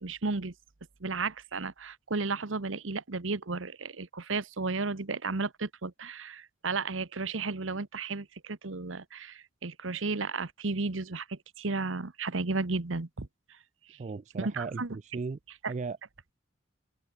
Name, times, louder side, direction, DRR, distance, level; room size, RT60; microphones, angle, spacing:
voice 1, 0.0-0.5 1.0-13.3 13.9-14.0 14.4-15.0 15.6-15.7, right 3 dB, 90° right, 1.2 m, -33 dB
voice 2, 14.0-15.4 15.7-16.0, right 4 dB, 35° right, 0.3 m, -36 dB
open air
head